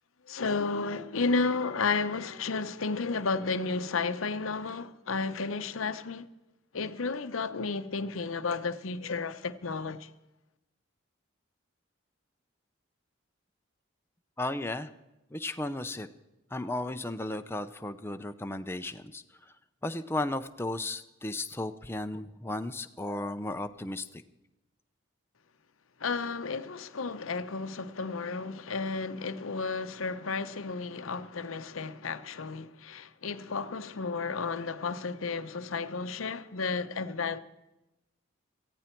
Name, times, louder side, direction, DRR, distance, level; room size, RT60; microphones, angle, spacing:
voice 1, 0.3-6.3 6.7-10.1 26.0-37.4, left 4 dB, 90° left, 0.8 m, -32 dB
voice 2, 14.4-14.9 15.3-16.1 16.5-19.2 19.8-24.2, left 2 dB, 10° left, 0.6 m, -34 dB
18.0 x 15.0 x 4.5 m
head